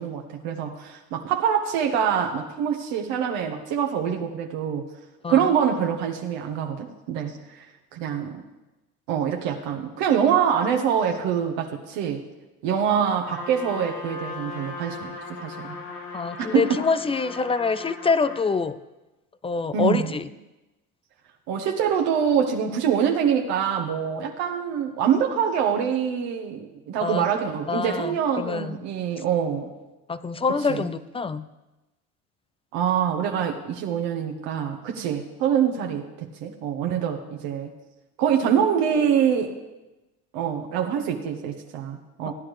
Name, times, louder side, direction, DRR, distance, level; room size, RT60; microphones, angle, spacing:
voice 1, 0.0-4.8 5.3-7.4 7.9-8.4 9.1-12.2 12.6-15.1 15.4-15.8 16.4-16.6 19.7-20.1 21.5-29.7 30.7-30.9 32.7-37.7 38.2-39.5 40.3-42.3, right 8 dB, 70° right, 2 dB, 1.4 m, -25 dB
Trumpet, 13.2-18.5, left 3 dB, 80° left, 3.2 m, -38 dB
voice 2, 16.1-18.8 19.4-20.3 27.0-27.3 27.7-28.9 30.1-31.5, left 4 dB, 15° left, 14 dB, 0.3 m, -25 dB
16.5 x 10.0 x 3.3 m, 1.0 s
hypercardioid pair, 75°, 45 cm